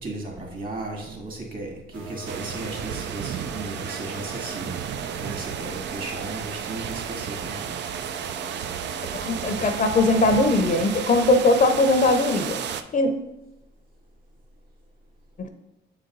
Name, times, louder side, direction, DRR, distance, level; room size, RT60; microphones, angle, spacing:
voice 1, 0.0-4.8 5.2-7.8, right 2 dB, 45° right, 0 dB, 2.1 m, -35 dB
sound 1, 1.9-9.8, right 4 dB, 85° right, 1.0 m, -42 dB
sound 2, 2.3-12.8, right 8 dB, 60° right, 0.4 m, -33 dB
voice 2, 9.1-12.6 12.9-13.1 15.4-15.5, left 2 dB, 40° left, 7 dB, 0.6 m, -20 dB
7.1 x 4.0 x 3.9 m, 0.92 s
cardioid pair, 90°, 20 cm